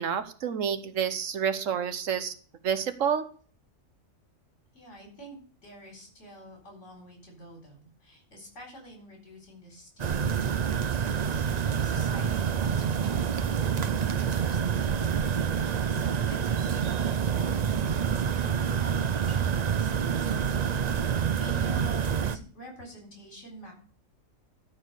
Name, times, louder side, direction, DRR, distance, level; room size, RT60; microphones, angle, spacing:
voice 1, 0.0-2.3 2.6-3.2, right 8 dB, 70° right, 12 dB, 1.3 m, -29 dB
voice 2, 4.7-23.7, equal, 60° left, 1 dB, 4.9 m, -48 dB
sound 1, 10.0-22.4, right 7 dB, 55° right, 0.4 m, -27 dB
13.0 x 4.7 x 8.0 m, 0.43 s
omnidirectional pair, 1.4 m